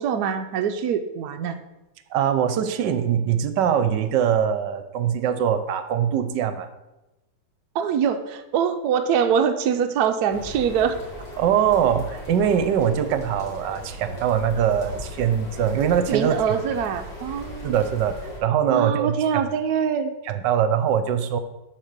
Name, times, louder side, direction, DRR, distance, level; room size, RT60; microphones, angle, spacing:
voice 1, 0.0-1.6 7.7-11.0 16.1-17.7 18.7-20.1, right 7 dB, 85° right, 6 dB, 0.8 m, -23 dB
voice 2, 2.1-6.7 11.4-16.5 17.6-18.1 18.4-19.4 20.3-21.4, right 8 dB, 70° right, 10 dB, 1.1 m, -22 dB
sound 1, 10.3-18.4, left 1 dB, 55° left, 3.1 m, -38 dB
7.5 x 4.4 x 6.7 m, 0.98 s
omnidirectional pair, 2.3 m